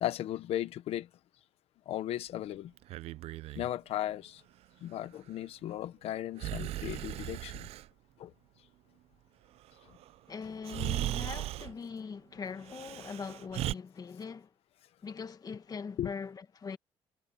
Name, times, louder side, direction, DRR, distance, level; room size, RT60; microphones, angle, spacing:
voice 1, 0.0-1.1 1.9-2.7 3.6-4.4 4.8-7.7 8.2-8.3 16.0-16.1, left 12 dB, 80° left, 1.1 m, -36 dB
Breathing, 2.8-3.7 6.4-7.9 10.0-10.1 10.6-11.7 12.6-13.7, right 15 dB, 80° right, 0.5 m, -37 dB
voice 2, 10.3-14.5 15.0-16.8, left 5 dB, 40° left, 1.8 m, -41 dB
cardioid pair, 105°, 10 cm